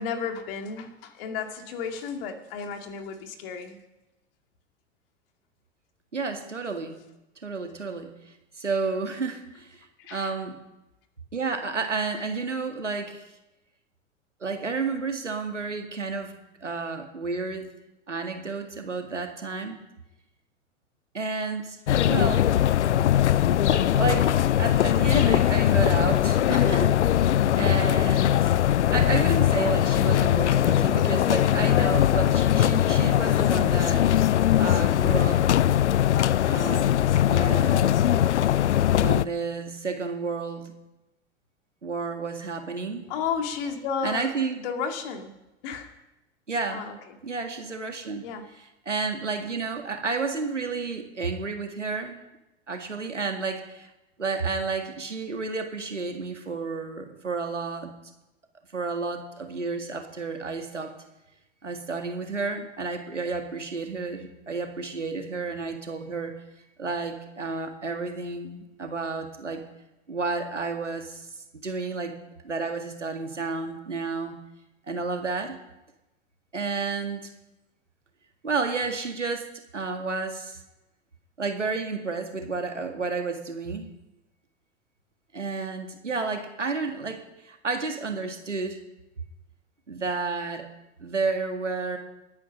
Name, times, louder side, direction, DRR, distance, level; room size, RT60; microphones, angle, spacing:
voice 1, 0.0-3.8 10.0-10.4 43.1-44.3 44.6-45.3 45.6-45.9 46.7-47.2 48.2-48.5, left 6 dB, 50° left, 5 dB, 2.3 m, -33 dB
voice 2, 6.1-7.0 7.4-8.1 8.6-10.6 11.3-13.3 14.4-16.3 16.6-17.7 18.1-19.8 21.1-22.5 23.7-27.3 27.6-28.5 28.9-34.1 34.6-35.5 36.5-36.9 37.3-38.1 39.0-40.7 41.8-43.1 44.0-44.6 46.5-46.9 47.2-48.3 48.9-52.2 52.7-53.9 54.2-57.9 58.7-60.9 61.6-66.3 66.8-69.6 70.1-71.2 71.6-72.1 72.4-74.4 74.9-75.6 76.5-77.3 78.4-79.5 79.7-80.6 81.4-83.9 85.3-88.8 89.9-90.7 91.0-92.0, right 4 dB, 85° right, 5 dB, 2.0 m, -31 dB
sound 1, 21.9-39.3, left 11 dB, 75° left, 0.5 m, -21 dB
21.0 x 9.6 x 5.5 m, 0.98 s
figure-of-eight pair, 90°, 35 cm